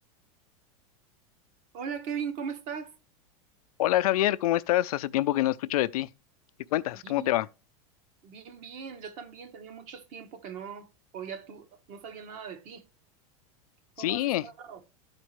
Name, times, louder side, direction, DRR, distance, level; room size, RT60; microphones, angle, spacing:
voice 1, 1.7-2.9 7.0-7.3 8.2-10.9 11.1-12.8 14.0-14.8, right 7 dB, 40° right, 1.1 m, -39 dB
voice 2, 3.8-6.1 6.7-7.5 14.0-14.4, left 14 dB, 90° left, 0.5 m, -26 dB
12.5 x 4.4 x 3.1 m
supercardioid pair, 155°, 18 cm